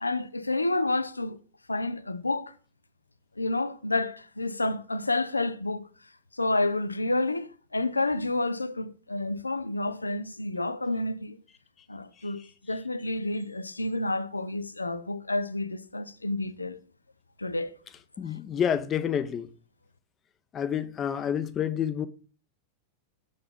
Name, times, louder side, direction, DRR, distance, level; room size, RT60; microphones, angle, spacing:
voice 1, 0.0-1.4 1.7-2.5 3.4-5.9 6.3-11.4 11.9-16.8 17.4-17.8 18.2-18.3, left 2 dB, 80° left, 0.5 m, -29 dB
voice 2, 18.2-19.5 20.5-22.1, left 8 dB, 25° left, 0.6 m, -28 dB
6.8 x 3.9 x 5.2 m
figure-of-eight pair, 90°, 0 cm